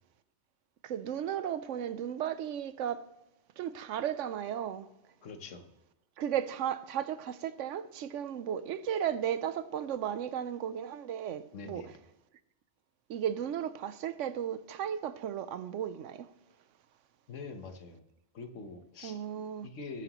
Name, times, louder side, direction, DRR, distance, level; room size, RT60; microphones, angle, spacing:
voice 1, 0.8-3.1 3.6-4.9 6.2-11.9 13.1-16.3 19.0-19.7, right 9 dB, 85° right, 1.0 m, -35 dB
voice 2, 5.2-5.7 11.5-12.0 17.3-18.0 18.3-19.2 19.6-20.0, left 3 dB, 90° left, 1.4 m, -44 dB
19.5 x 7.5 x 3.0 m
omnidirectional pair, 1.2 m